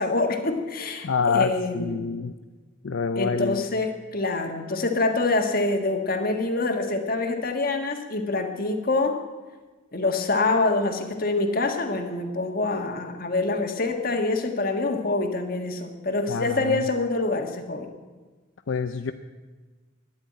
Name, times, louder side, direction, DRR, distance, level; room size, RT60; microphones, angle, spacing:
voice 1, 0.0-2.0 3.1-9.2 9.9-17.9, left 3 dB, 45° left, 5 dB, 1.6 m, -26 dB
voice 2, 1.0-2.3 2.8-3.6 16.3-16.8 18.7-19.1, left 5 dB, 75° left, 8 dB, 0.6 m, -26 dB
13.0 x 10.5 x 9.4 m, 1.3 s
head